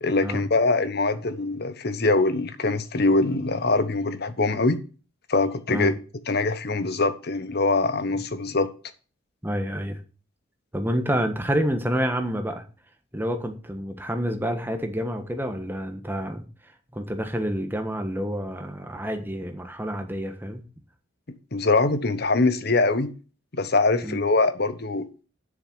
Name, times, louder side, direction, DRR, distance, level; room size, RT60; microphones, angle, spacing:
voice 1, 0.0-4.8 5.3-5.9 6.3-8.7 21.5-23.1 23.5-25.1, left 3 dB, 55° left, 1.1 m, -23 dB
voice 2, 9.4-10.0 10.7-12.6 13.1-16.4 16.9-20.6 24.0-24.2, equal, 10° right, 1.4 m, -28 dB
7.5 x 6.5 x 7.9 m
head